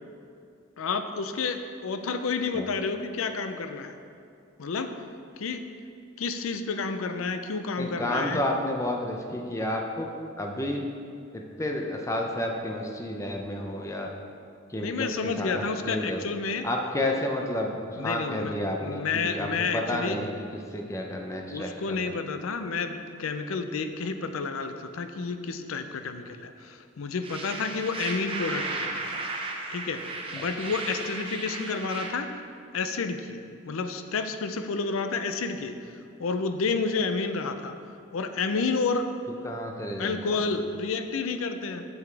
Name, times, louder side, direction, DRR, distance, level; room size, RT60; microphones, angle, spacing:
voice 1, 0.8-4.0 4.6-4.9 5.4-5.6 6.2-8.5 14.8-16.7 18.0-18.5 18.8-20.2 21.5-28.9 29.7-32.4 32.7-35.7 36.2-37.8 38.1-39.1 40.0-41.9, left 4 dB, 90° left, 8 dB, 0.5 m, -30 dB
voice 2, 7.8-10.1 10.4-10.8 11.3-14.1 14.7-16.2 16.6-20.5 20.7-22.2 39.4-40.3, left 1 dB, 15° left, 1 dB, 0.6 m, -31 dB
sound 1, 27.2-32.1, right 3 dB, 25° right, 0.7 m, -35 dB
8.0 x 7.1 x 3.3 m, 2.4 s
head